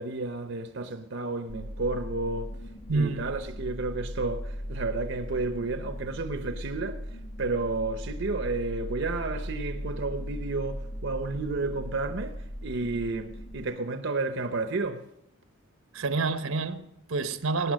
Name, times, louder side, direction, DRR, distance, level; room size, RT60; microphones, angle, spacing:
voice 1, 0.0-2.5 2.9-7.1 7.4-15.1, right 3 dB, 60° right, 0.8 m, -31 dB
sound 1, 1.5-13.6, equal, 35° left, 1.2 m, -38 dB
voice 2, 2.9-3.4 15.9-17.7, right 3 dB, 80° right, 1.0 m, -28 dB
18.0 x 9.8 x 6.4 m
head